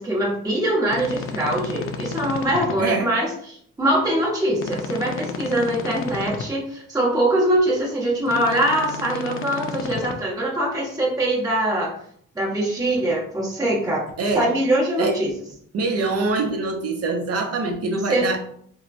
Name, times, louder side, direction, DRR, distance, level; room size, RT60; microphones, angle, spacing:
voice 1, 0.0-11.9 12.3-14.0 14.3-15.3 18.1-18.3, right 1 dB, 10° right, -4 dB, 0.9 m, -23 dB
sound 1, 0.9-2.7 4.6-6.4 8.3-10.1, left 5 dB, 45° left, 0.4 m, -32 dB
voice 2, 2.8-3.1 14.2-14.5 15.0-15.2 15.7-18.4, right 3 dB, 55° right, 3 dB, 0.6 m, -24 dB
3.1 x 2.1 x 2.5 m, 0.64 s
cardioid pair, 90°, 30 cm